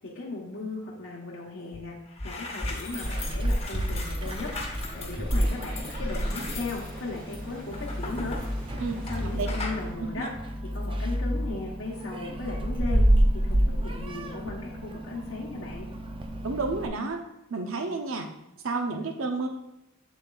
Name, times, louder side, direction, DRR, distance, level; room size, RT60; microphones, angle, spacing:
voice 1, 0.0-2.0 2.2-4.5 4.9-8.4 9.1-10.3 10.7-13.0 13.4-15.9, left 3 dB, 70° left, -4 dB, 1.0 m, -37 dB
sound 1, 1.7-1.8 2.1-9.2 9.5-9.8, left 2 dB, 30° left, 1.0 m, -37 dB
Meow, 2.9-16.9, right 1 dB, 25° right, 0.5 m, -30 dB
sound 2, 4.6-11.5, left 1 dB, 40° right, 1.6 m, -36 dB
voice 2, 8.8-9.5 10.0-10.3 16.4-18.3 18.6-19.5, right 3 dB, 75° right, 5 dB, 0.6 m, -31 dB
7.1 x 7.0 x 2.4 m, 0.92 s
head